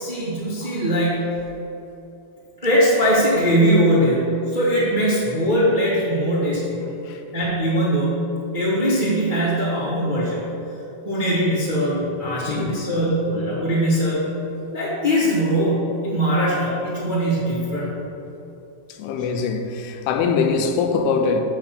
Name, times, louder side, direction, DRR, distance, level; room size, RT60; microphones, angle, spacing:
voice 1, 0.0-1.4 2.6-6.6 7.3-10.4 11.0-14.2 14.7-17.9, equal, 25° right, 0.9 m, -21 dB
voice 2, 19.0-21.4, left 5 dB, 90° left, 2.6 m, -22 dB
6.8 x 6.1 x 6.6 m
omnidirectional pair, 4.5 m